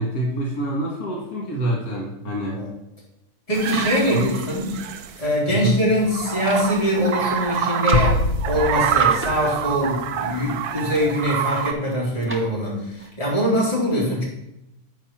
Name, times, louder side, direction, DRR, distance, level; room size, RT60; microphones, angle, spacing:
voice 1, 0.0-2.6 4.1-4.2 5.5-5.8, right 1 dB, 75° left, -2 dB, 2.2 m, -26 dB
voice 2, 3.5-4.7 5.2-8.1 8.4-14.2, equal, 20° left, -6 dB, 3.2 m, -23 dB
sound 1, 3.5-5.2 5.9-11.7, right 8 dB, 90° right, 1.2 m, -26 dB
sound 2, 6.0-6.7 7.5-9.5 10.5-11.2 11.7-12.5 13.0-13.1, right 1 dB, 10° right, 0.7 m, -37 dB
sound 3, 7.9-10.4, left 2 dB, 45° left, 0.5 m, -25 dB
8.0 x 5.0 x 5.9 m, 0.87 s
omnidirectional pair, 1.6 m